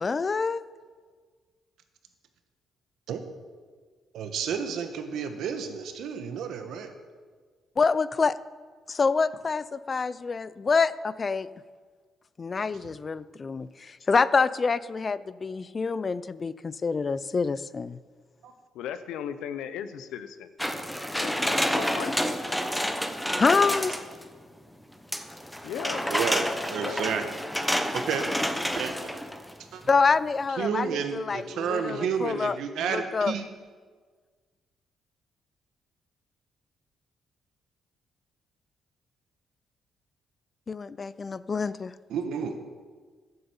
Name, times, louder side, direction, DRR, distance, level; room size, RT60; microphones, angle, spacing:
voice 1, 0.0-0.6 7.8-8.4 8.9-11.5 12.4-18.0 23.4-24.0 29.9-32.6 32.8-33.3 40.7-41.9, left 4 dB, 35° left, 17 dB, 0.4 m, -26 dB
voice 2, 4.1-6.9 18.4-18.5 26.1-27.2 27.9-28.2 28.8-29.2 29.7-29.8 30.6-33.4 42.1-42.6, right 7 dB, 80° right, 7 dB, 1.2 m, -31 dB
voice 3, 18.7-20.5 21.2-22.3 25.6-26.0 26.7-27.1, left 9 dB, 90° left, 12 dB, 0.7 m, -37 dB
sound 1, 20.6-24.3 25.1-29.5 29.9-30.0, equal, 5° left, 0.9 m, -29 dB
9.4 x 7.8 x 7.2 m, 1.5 s
cardioid pair, 90°, 0 cm